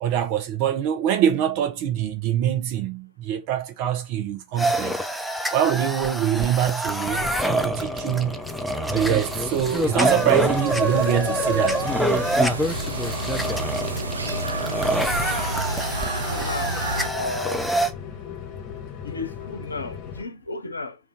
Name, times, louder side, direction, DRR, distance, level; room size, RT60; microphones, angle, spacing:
voice 1, 0.0-5.0 5.5-8.4 8.9-11.8, right 10 dB, 45° right, 0.7 m, -24 dB
sound 1, 4.6-17.9, right 1 dB, ahead, 0.4 m, -26 dB
Rain, 7.1-20.2, left 8 dB, 35° left, 0.8 m, -37 dB
sound 2, 8.9-17.1, right 2 dB, 80° right, 0.4 m, -31 dB
voice 2, 16.3-16.8 17.1-17.7 19.0-21.0, left 3 dB, 75° left, 0.5 m, -33 dB
2.5 x 2.4 x 3.7 m
figure-of-eight pair, 90°, 0 cm